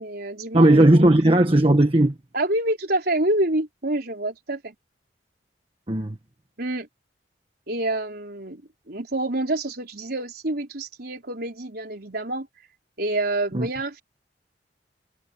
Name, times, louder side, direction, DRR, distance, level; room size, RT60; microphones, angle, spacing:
voice 1, 0.0-1.0 2.3-4.7 6.6-6.9 7.7-12.5 13.0-14.0, right 1 dB, 60° right, 4.5 m, -27 dB
voice 2, 0.5-2.1 5.9-6.2 13.5-13.7, right 1 dB, 30° right, 1.4 m, -16 dB
head